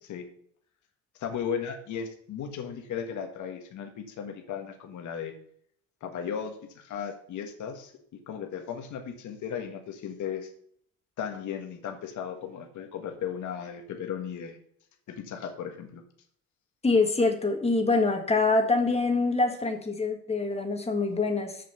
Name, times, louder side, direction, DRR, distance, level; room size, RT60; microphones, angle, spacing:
voice 1, 1.2-5.3 6.0-7.9 8.3-10.5 11.2-14.6 15.1-16.0, left 7 dB, 60° left, 5 dB, 1.6 m, -36 dB
voice 2, 16.8-21.6, left 3 dB, 20° left, 5 dB, 1.7 m, -25 dB
6.8 x 6.7 x 6.9 m, 0.65 s
cardioid pair, 115°, 34 cm